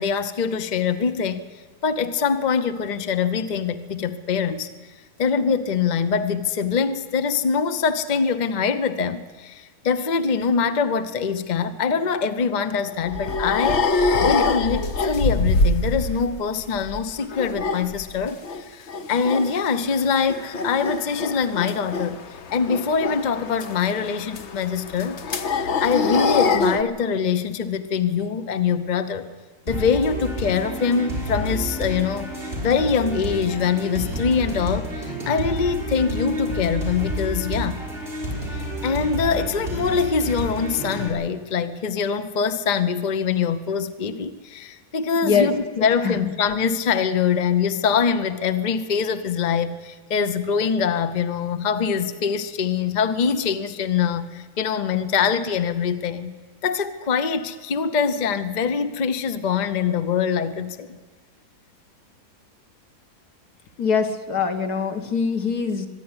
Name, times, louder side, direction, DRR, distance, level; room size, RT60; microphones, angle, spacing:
voice 1, 0.0-1.5 1.8-4.7 5.2-13.9 14.2-22.2 22.5-29.3 29.7-32.3 32.6-37.8 38.5-56.3 56.6-61.0, left 6 dB, 35° left, 10 dB, 0.8 m, -24 dB
sound 1, 12.7-16.3 16.6-18.6 18.9-19.5 19.9-26.8, left 3 dB, 50° left, 1.1 m, -25 dB
sound 2, 29.7-41.1, equal, 35° right, 4.9 m, -30 dB
voice 2, 63.8-65.9, left 6 dB, 80° left, 6 dB, 2.1 m, -23 dB
24.0 x 11.0 x 9.9 m, 1.4 s
omnidirectional pair, 1.6 m